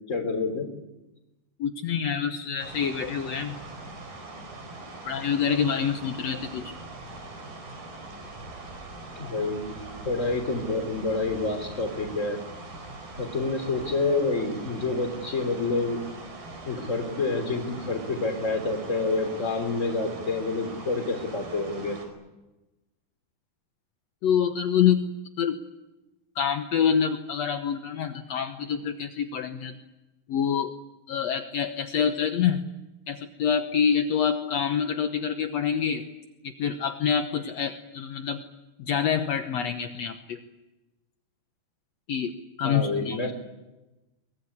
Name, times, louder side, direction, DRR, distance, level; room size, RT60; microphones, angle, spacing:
voice 1, 0.1-0.7 9.2-9.8 10.0-12.4 13.1-16.0 16.6-22.0 42.6-43.3, left 3 dB, 20° left, 5 dB, 3.3 m, -28 dB
voice 2, 1.6-3.6 5.1-6.7 24.2-25.1 25.4-25.6 26.4-29.8 30.3-30.7 31.1-32.6 33.1-36.0 36.4-38.4 38.8-40.4 42.1-42.3 42.6-43.2, left 7 dB, 65° left, 6 dB, 1.8 m, -26 dB
sound 1, 2.6-22.1, right 2 dB, 65° right, 6.3 m, -42 dB
23.5 x 21.0 x 9.9 m, 1.0 s
omnidirectional pair, 4.3 m